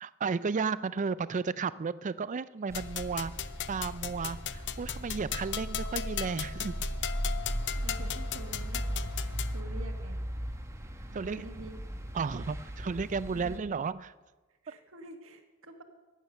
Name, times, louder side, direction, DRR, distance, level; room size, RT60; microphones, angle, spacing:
voice 1, 0.0-3.3 3.7-6.8 11.1-11.5 12.1-14.1, right 5 dB, 35° right, 17 dB, 0.4 m, -33 dB
sound 1, 2.7-9.6, left 11 dB, 55° left, 0.5 m, -38 dB
sound 2, 2.7-13.6, equal, 15° right, 1.0 m, -37 dB
voice 2, 7.6-10.2 11.1-11.8 13.3-13.7 14.6-15.8, right 2 dB, 65° right, 5 dB, 1.6 m, -47 dB
14.5 x 9.3 x 6.5 m, 1.2 s
head